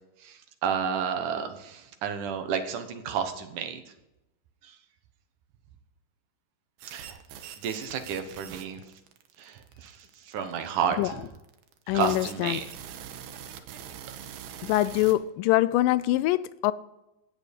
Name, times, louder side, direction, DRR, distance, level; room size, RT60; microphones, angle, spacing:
voice 1, 0.2-3.8 4.6-4.8 6.9-7.2 7.6-8.8 9.4-11.2 11.9-12.6, right 7 dB, 75° right, 2.6 m, -31 dB
sound 1, 6.8-15.2, right 9 dB, 90° right, 2.8 m, -43 dB
voice 2, 11.9-12.6 14.6-16.7, left 16 dB, 85° left, 2.2 m, -24 dB
15.5 x 9.1 x 5.3 m
omnidirectional pair, 3.8 m